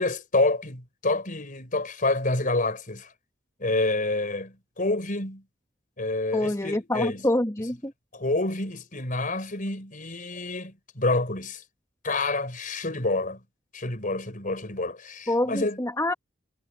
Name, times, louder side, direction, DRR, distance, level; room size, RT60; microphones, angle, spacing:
voice 1, 0.0-3.1 3.6-5.4 6.0-7.2 8.1-11.6 12.0-13.4 13.7-15.8, left 2 dB, 45° left, 4.9 m, -28 dB
voice 2, 6.3-7.9 15.3-16.1, left 1 dB, 15° left, 2.1 m, -26 dB
head